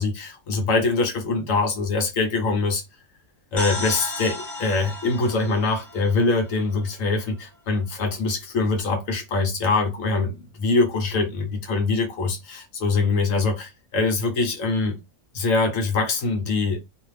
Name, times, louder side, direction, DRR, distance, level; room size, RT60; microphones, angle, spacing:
voice 1, 0.0-2.8 3.5-15.0 15.3-16.8, left 3 dB, 65° left, 1.1 m, -23 dB
sound 1, 3.6-7.2, left 1 dB, 25° left, 1.1 m, -34 dB
2.5 x 2.4 x 3.1 m
omnidirectional pair, 1.6 m